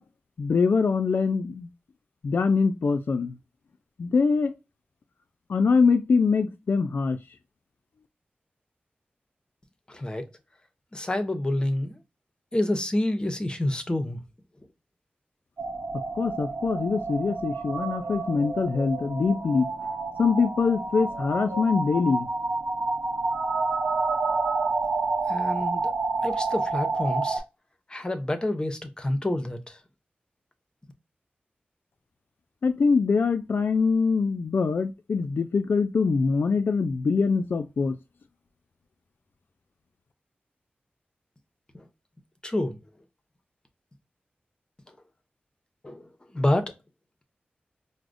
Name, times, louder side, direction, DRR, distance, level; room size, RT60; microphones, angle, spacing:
voice 1, 0.4-1.7 2.2-3.4 4.0-4.5 5.5-7.2 16.1-19.7 20.2-22.3 32.6-37.9, left 4 dB, 65° left, 0.3 m, -23 dB
voice 2, 9.9-10.3 10.9-12.0 12.5-14.2 25.3-25.9 26.2-27.4 27.9-29.8 41.7-41.9 42.4-42.8 44.9-45.0 45.8-46.7, left 1 dB, 25° left, 0.6 m, -28 dB
sound 1, 15.6-27.4, right 3 dB, 90° right, 0.7 m, -29 dB
4.7 x 2.0 x 2.5 m
wide cardioid pair, 80°, 4 cm